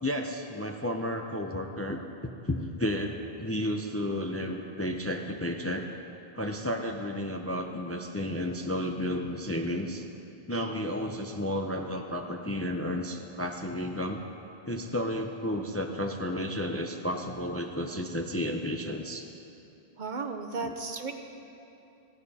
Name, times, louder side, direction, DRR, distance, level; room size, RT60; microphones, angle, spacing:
voice 1, 0.0-5.9 6.3-10.0 10.5-14.2 14.7-19.2 20.6-20.7, left 1 dB, 15° left, 4 dB, 0.5 m, -32 dB
voice 2, 20.0-21.1, right 4 dB, 50° right, 6 dB, 0.9 m, -34 dB
16.0 x 16.0 x 4.2 m, 2.8 s
omnidirectional pair, 1.1 m